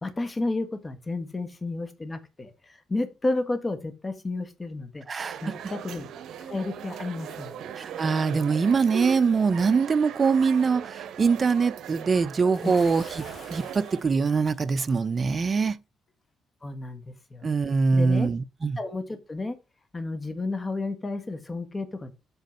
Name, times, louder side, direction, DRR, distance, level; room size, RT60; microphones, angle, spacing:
voice 1, 0.0-5.0 5.4-6.1 6.4-7.5 12.6-12.8 16.6-17.5 17.9-18.3 18.8-19.6 19.9-22.1, left 2 dB, 25° left, 1.7 m, -32 dB
voice 2, 5.1-5.5 7.8-15.8 17.4-18.8, right 5 dB, 35° right, 0.6 m, -23 dB
sound 1, 5.2-14.0, right 8 dB, 75° right, 1.0 m, -39 dB
Bathtub (filling or washing) / Splash splatter, 12.5-15.0, left 4 dB, 50° left, 1.9 m, -48 dB
8.0 x 5.1 x 5.1 m
cardioid pair, 90°, 0 cm